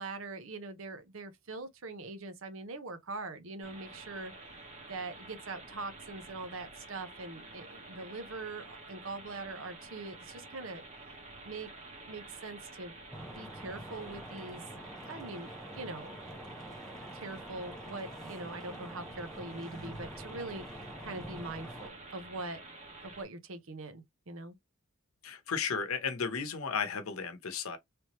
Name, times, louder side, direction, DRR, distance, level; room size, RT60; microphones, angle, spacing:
voice 1, 0.0-4.3 4.9-10.8 11.4-11.7 12.0-14.6 15.1-16.2 17.1-22.6 23.0-24.5, right 3 dB, 65° right, 0.8 m, -42 dB
sound 1, 3.6-23.2, right 2 dB, 35° right, 1.2 m, -50 dB
sound 2, 13.1-21.9, right 1 dB, 5° left, 0.6 m, -46 dB
voice 2, 25.2-27.8, left 6 dB, 75° left, 0.8 m, -34 dB
3.4 x 3.0 x 2.9 m
head